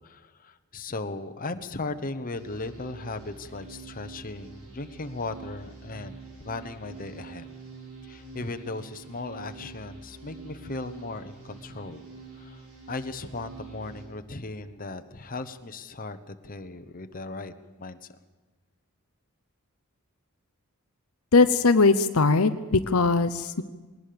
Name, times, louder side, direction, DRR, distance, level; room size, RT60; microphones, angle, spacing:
voice 1, 0.0-6.2 6.4-7.5 8.0-12.0 12.3-17.5 17.8-18.1, left 3 dB, 40° left, 9 dB, 1.1 m, -37 dB
sound 1, 2.3-14.0, right 4 dB, 85° right, 7.2 m, -46 dB
voice 2, 21.3-23.6, left 3 dB, 75° left, 10 dB, 0.8 m, -20 dB
20.5 x 19.0 x 6.9 m, 1.3 s
head